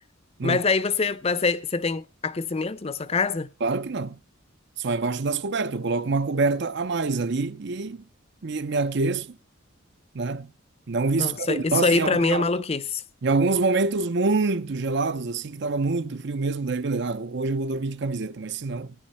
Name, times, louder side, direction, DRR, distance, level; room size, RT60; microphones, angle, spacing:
voice 1, 0.4-3.5 11.2-13.0, left 4 dB, 30° left, 0.6 m, -24 dB
voice 2, 3.6-4.2 4.8-8.0 8.4-9.4 10.1-10.5 10.9-12.5 13.2-18.9, right 3 dB, 55° right, 0.6 m, -26 dB
16.5 x 9.8 x 4.2 m
head